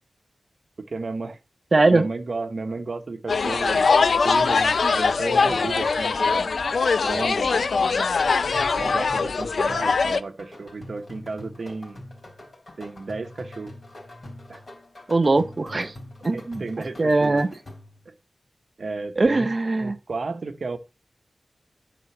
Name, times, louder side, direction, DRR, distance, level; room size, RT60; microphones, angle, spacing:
voice 1, 0.8-1.4 1.8-3.9 4.2-6.5 7.0-8.1 8.7-12.0 12.8-13.7 14.5-14.6 16.3-17.4 18.1-18.2 18.8-19.5 19.8-20.8, right 3 dB, 60° right, 1.0 m, -33 dB
voice 2, 1.7-2.1 15.1-15.9 16.2-16.6 17.0-17.5 19.2-20.0, right 3 dB, 40° right, 0.6 m, -20 dB
sound 1, 3.3-10.2, left 4 dB, 75° left, 0.4 m, -22 dB
sound 2, 8.5-18.1, left 1 dB, 50° left, 3.3 m, -43 dB
9.7 x 3.9 x 7.0 m
wide cardioid pair, 110°, 0 cm